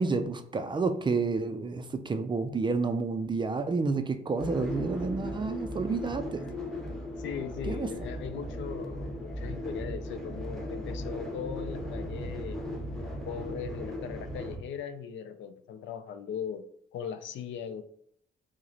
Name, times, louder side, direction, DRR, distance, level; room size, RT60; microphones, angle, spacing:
voice 1, 0.0-6.4 7.7-7.9, right 4 dB, 25° right, 0.3 m, -30 dB
sound 1, 4.4-14.6, left 1 dB, ahead, 0.8 m, -37 dB
voice 2, 7.2-12.6 13.2-16.7 16.9-17.8, left 7 dB, 70° left, 0.4 m, -39 dB
4.7 x 2.1 x 2.7 m
cardioid pair, 90°, 20 cm